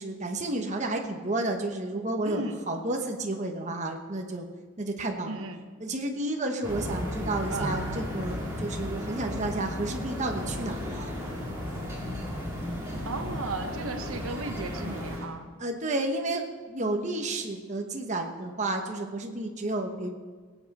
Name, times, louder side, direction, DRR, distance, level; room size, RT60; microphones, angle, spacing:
voice 1, 0.0-4.5 4.8-5.4 5.8-11.1 15.6-20.1, right 2 dB, 35° right, 3 dB, 1.1 m, -31 dB
voice 2, 2.2-2.6 5.2-5.6 7.5-7.7 13.1-15.5, right 3 dB, 85° right, 6 dB, 1.1 m, -35 dB
sound 1, 6.6-15.3, equal, 15° right, 2.3 m, -36 dB
sound 2, 6.7-15.2, left 2 dB, 20° left, 0.5 m, -39 dB
19.0 x 8.3 x 4.2 m, 1.5 s
head